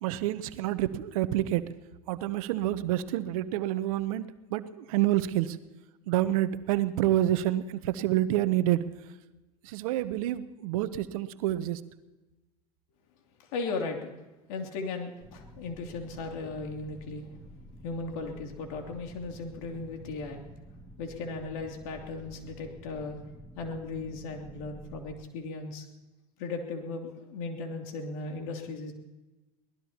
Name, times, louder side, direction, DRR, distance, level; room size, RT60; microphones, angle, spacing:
voice 1, 0.0-1.6 2.1-5.6 6.1-8.8 9.6-11.8, right 14 dB, 70° right, 14 dB, 0.9 m, -28 dB
voice 2, 13.4-14.0 14.5-17.3 17.8-20.4 21.0-23.2 23.6-25.9 26.4-28.9, left 3 dB, 65° left, 2 dB, 2.9 m, -37 dB
underwater roar, 15.2-25.2, equal, 10° left, 2.6 m, -50 dB
23.0 x 18.5 x 2.9 m, 1.1 s
hypercardioid pair, 80°, 19 cm